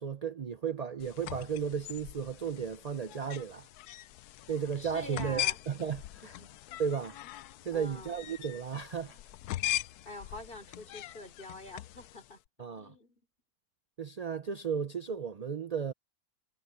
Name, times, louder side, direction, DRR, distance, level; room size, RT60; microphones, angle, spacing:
voice 1, 0.0-3.7 4.5-6.2 6.8-7.2 7.6-9.2 12.6-12.9 14.0-15.9, right 7 dB, 55° right, 0.4 m, -34 dB
sound 1, 1.0-12.3, left 13 dB, 85° left, 1.1 m, -40 dB
voice 2, 4.8-5.6 6.2-6.8 7.7-8.1 10.0-12.4 12.7-13.2, left 2 dB, 35° left, 4.2 m, -46 dB
omnidirectional pair, 1.6 m